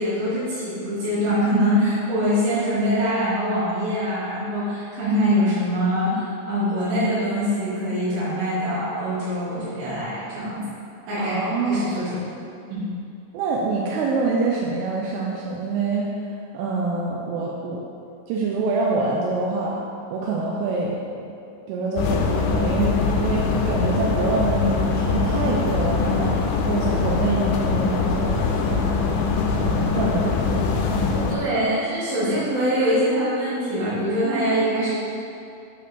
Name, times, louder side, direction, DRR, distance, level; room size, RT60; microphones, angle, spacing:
voice 1, 0.0-10.6 11.1-11.4 11.7-12.2 12.7-12.8 31.3-34.9, equal, 75° right, -13 dB, 4.4 m, -23 dB
voice 2, 11.2-12.0 13.3-16.1 16.5-17.8 18.3-19.8 20.1-21.0 21.3-21.4 21.7-26.3 26.6-29.3 29.6-30.7 30.9-31.4, right 3 dB, 90° right, -3 dB, 3.3 m, -25 dB
sound 1, 22.0-31.4, left 4 dB, 80° left, 2.8 m, -23 dB
9.0 x 3.5 x 5.9 m, 2.5 s
omnidirectional pair, 5.6 m